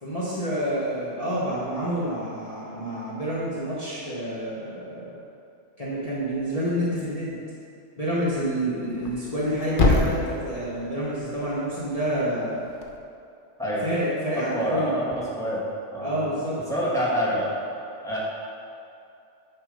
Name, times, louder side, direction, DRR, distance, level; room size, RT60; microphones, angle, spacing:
voice 1, 0.0-5.1 5.8-7.3 8.0-12.6 13.8-14.9 16.0-16.6, equal, 30° left, -10 dB, 1.5 m, -28 dB
Thump thud, 8.9-13.0, left 2 dB, 50° left, 0.9 m, -28 dB
voice 2, 14.4-15.0 15.4-15.6 15.9-16.1 16.7-17.5 18.0-18.2, equal, 5° left, -8 dB, 1.9 m, -26 dB
9.8 x 4.8 x 5.3 m, 2.6 s
omnidirectional pair, 1.2 m